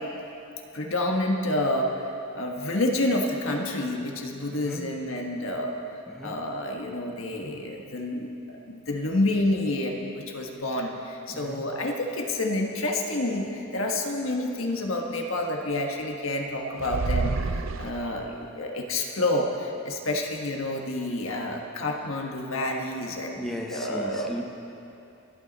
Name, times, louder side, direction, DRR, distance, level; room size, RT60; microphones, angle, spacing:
voice 1, 0.7-1.9 2.3-5.7 6.2-24.3, left 1 dB, 90° left, 1 dB, 1.4 m, -29 dB
voice 2, 4.5-4.9 6.1-6.4 11.3-11.6 23.4-24.4, equal, ahead, 0 dB, 1.1 m, -36 dB
sound 1, 16.8-18.4, right 3 dB, 80° right, 0.6 m, -29 dB
25.5 x 9.0 x 4.1 m, 2.8 s
head